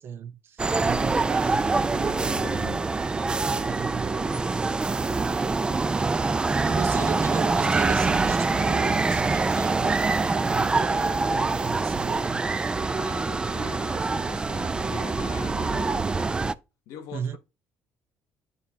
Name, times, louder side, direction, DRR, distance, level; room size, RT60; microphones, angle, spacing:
voice 1, 0.0-1.7 3.5-4.2 6.6-12.5 17.1-17.4, right 8 dB, 50° right, 0.7 m, -35 dB
sound 1, 0.6-16.5, right 3 dB, 20° right, 0.3 m, -25 dB
voice 2, 1.8-2.8 6.6-7.5 12.9-15.9 16.9-17.4, left 8 dB, 85° left, 1.0 m, -43 dB
10.5 x 4.0 x 2.7 m
cardioid pair, 105°, 5 cm